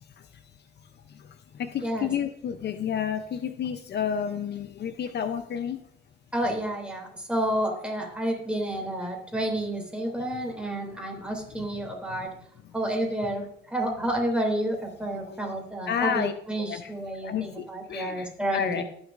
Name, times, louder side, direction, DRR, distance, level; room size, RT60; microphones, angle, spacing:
voice 1, 0.8-5.8 10.2-10.3 11.8-12.3 12.6-12.7 15.1-15.4 15.9-16.3 16.7-16.9 17.2-18.8, left 8 dB, 60° left, 9 dB, 0.6 m, -31 dB
voice 2, 6.3-12.3 12.7-18.8, right 1 dB, 5° right, 0 dB, 2.9 m, -30 dB
18.5 x 6.3 x 2.5 m, 0.71 s
cardioid pair, 90°, 20 cm